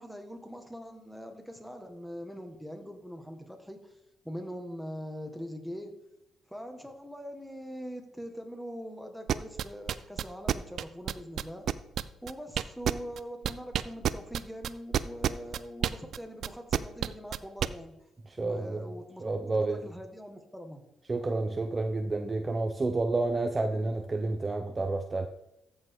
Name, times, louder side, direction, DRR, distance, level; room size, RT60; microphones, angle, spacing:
voice 1, 0.0-3.8 4.2-5.9 6.5-11.7 12.2-17.9 18.4-20.8, equal, ahead, 5 dB, 1.6 m, -42 dB
sound 1, 9.3-13.2 13.4-17.7, right 9 dB, 65° right, 0.4 m, -28 dB
voice 2, 18.4-18.8 19.2-19.8 21.1-25.3, right 3 dB, 25° right, 5 dB, 0.6 m, -30 dB
14.0 x 5.4 x 3.6 m, 0.87 s
cardioid pair, 90°, 0 cm